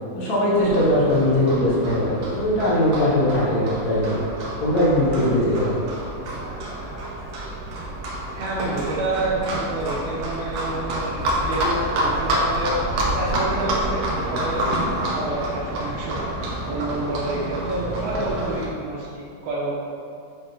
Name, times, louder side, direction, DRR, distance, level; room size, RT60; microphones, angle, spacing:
voice 1, 0.1-4.2 4.6-5.7, left 1 dB, 70° left, -8 dB, 0.8 m, -20 dB
Livestock farm animals working animals, 0.6-18.7, right 1 dB, 90° right, 1.6 m, -28 dB
voice 2, 8.3-12.7 13.2-16.3 16.7-19.8, right 2 dB, 65° right, -8 dB, 3.1 m, -28 dB
9.4 x 6.1 x 3.0 m, 2.5 s
omnidirectional pair, 4.9 m